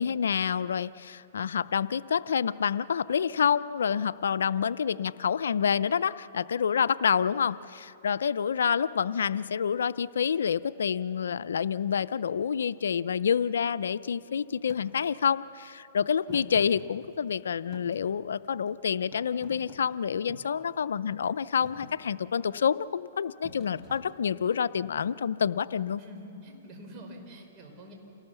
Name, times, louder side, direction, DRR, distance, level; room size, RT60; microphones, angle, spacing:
voice 1, 0.0-26.0, left 7 dB, 85° left, 16 dB, 0.5 m, -28 dB
Thump thud, 14.7-14.8 16.3-17.4 17.7-18.7 19.1-20.6 21.1-21.4 21.6-22.0 23.4-24.5, left 1 dB, ahead, 3.4 m, -48 dB
voice 2, 26.0-27.9, equal, 30° right, 2 dB, 4.9 m, -46 dB
28.0 x 18.5 x 6.9 m, 2.9 s
hypercardioid pair, 140°, 0 cm